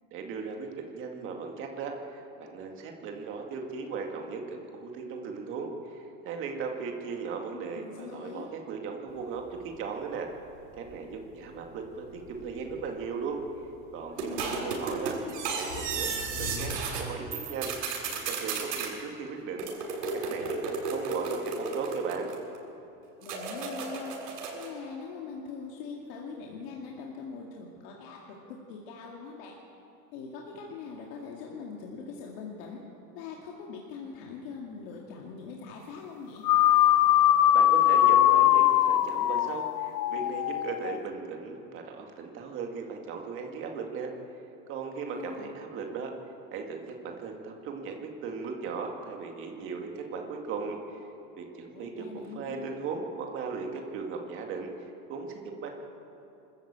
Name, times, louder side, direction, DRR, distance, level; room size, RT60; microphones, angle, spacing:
voice 1, 0.1-10.3 10.8-13.4 13.9-17.7 18.1-22.3 37.5-44.1 44.7-46.1 46.5-50.8 51.4-54.7 55.1-55.7, right 5 dB, 25° right, 2 dB, 2.1 m, -37 dB
voice 2, 7.5-8.5 14.1-14.7 23.2-24.1 24.5-28.4 28.7-29.6 30.1-32.8 33.1-36.4 45.1-45.5 51.7-52.8, left 5 dB, 40° left, -1 dB, 2.2 m, -42 dB
sound 1, 9.1-16.8, left 4 dB, 65° left, 6.1 m, -46 dB
sound 2, 14.2-17.0 17.3-18.9 19.6-22.6 23.2-24.7, right 4 dB, 80° right, 7.1 m, -33 dB
sound 3, 36.4-41.0, left 12 dB, 90° left, 1.0 m, -22 dB
24.5 x 14.0 x 8.8 m, 3.0 s
supercardioid pair, 170°, 48 cm